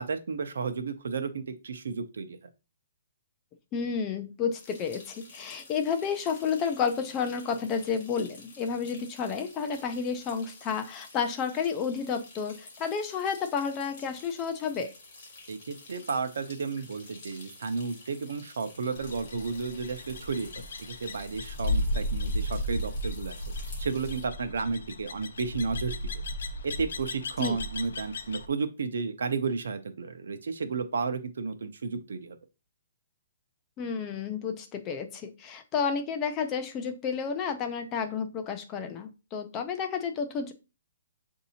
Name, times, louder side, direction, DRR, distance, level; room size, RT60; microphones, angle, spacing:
voice 1, 0.0-2.4 15.5-20.5 20.8-23.4 23.8-25.9 26.6-32.4, right 4 dB, 75° right, 9 dB, 0.7 m, -32 dB
voice 2, 3.7-14.9 27.4-27.6 33.8-40.5, left 6 dB, 15° left, 6 dB, 0.3 m, -31 dB
sound 1, 4.6-24.3, left 3 dB, 35° left, 1.5 m, -51 dB
sound 2, 19.0-28.5, left 1 dB, 80° left, 0.6 m, -34 dB
7.0 x 2.7 x 2.7 m, 0.29 s
hypercardioid pair, 180°, 0 cm